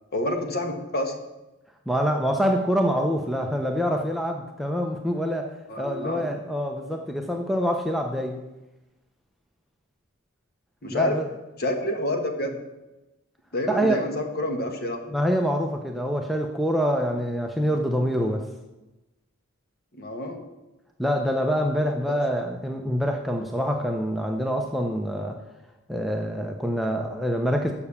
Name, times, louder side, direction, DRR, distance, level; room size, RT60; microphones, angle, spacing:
voice 1, 0.1-1.1 5.7-6.3 10.8-11.2 11.6-12.6 13.5-15.0 19.9-20.4 22.1-22.2, left 1 dB, 45° left, 5 dB, 1.2 m, -28 dB
voice 2, 1.9-5.5 5.8-8.4 10.9-11.3 13.7-14.0 15.1-18.4 21.0-25.4 25.9-27.7, equal, ahead, 2 dB, 0.5 m, -25 dB
6.9 x 6.8 x 7.0 m, 1.0 s
head